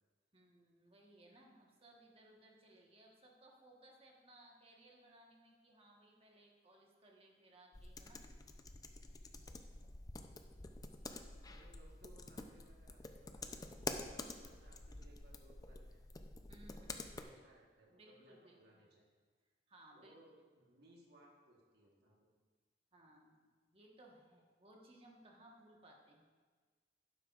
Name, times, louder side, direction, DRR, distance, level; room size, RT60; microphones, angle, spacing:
voice 1, 0.3-8.2 16.5-16.9 17.9-18.8 19.7-20.1 22.9-26.3, right 1 dB, 35° right, 0 dB, 1.3 m, -63 dB
sound 1, 7.7-17.2, left 3 dB, 20° left, 0.5 m, -49 dB
voice 2, 11.4-16.0 16.8-19.1 19.9-22.3, right 1 dB, 60° right, -2 dB, 1.4 m, -65 dB
11.5 x 9.3 x 2.5 m, 1.4 s
head